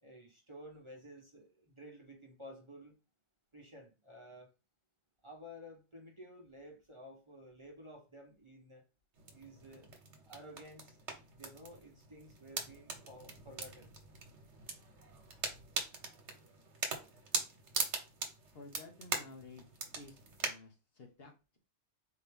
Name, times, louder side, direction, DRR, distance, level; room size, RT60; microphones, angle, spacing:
voice 1, 0.0-2.9 3.5-4.5 5.2-8.8 9.3-9.9 10.3-11.0 11.2-13.9, equal, 30° right, 0 dB, 0.9 m, -53 dB
sound 1, 9.2-20.5, right 4 dB, 80° right, 1.3 m, -42 dB
voice 2, 18.5-19.6 20.0-21.6, left 3 dB, 60° left, 3 dB, 1.1 m, -53 dB
4.3 x 2.8 x 3.4 m, 0.29 s
omnidirectional pair, 1.2 m